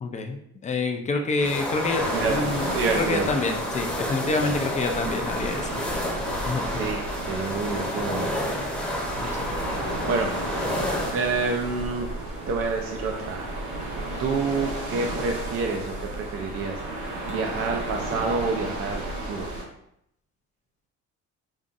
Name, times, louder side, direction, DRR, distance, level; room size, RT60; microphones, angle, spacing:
voice 1, 0.0-2.6 3.0-5.8 6.4-6.7 9.2-9.5, left 3 dB, 25° left, 4 dB, 0.4 m, -27 dB
sound 1, 1.4-11.1, left 1 dB, 5° left, 0.8 m, -30 dB
sound 2, 2.0-19.6, right 2 dB, 70° right, 1.3 m, -33 dB
voice 2, 2.7-3.3 4.4-4.5 6.7-8.3 9.2-10.3 11.1-12.1 12.5-13.5 14.2-16.8 17.3-19.5, right 4 dB, 45° right, 2 dB, 0.5 m, -28 dB
5.3 x 2.5 x 2.5 m, 0.74 s
cardioid pair, 120°, 31 cm